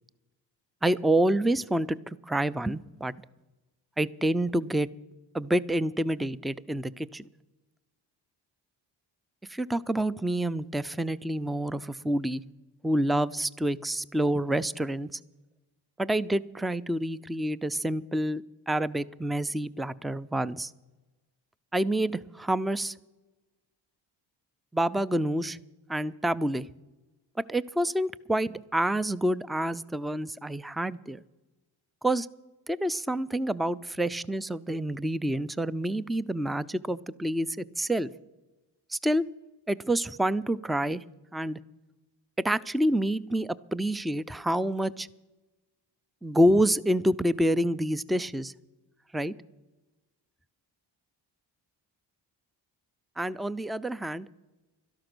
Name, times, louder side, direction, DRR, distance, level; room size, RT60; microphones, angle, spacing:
voice 1, 0.8-3.1 4.0-4.9 5.3-7.2 9.5-12.4 12.8-15.2 16.0-20.7 21.7-22.9 24.7-25.6 25.9-26.7 27.4-31.2 32.0-32.3 32.7-38.1 38.9-39.2 39.7-41.0 41.3-41.6 42.4-45.1 46.2-48.5 49.1-49.3 53.2-54.3, right 1 dB, ahead, 18 dB, 0.3 m, -28 dB
12.5 x 11.5 x 6.1 m, 1.1 s
supercardioid pair, 50°, 48 cm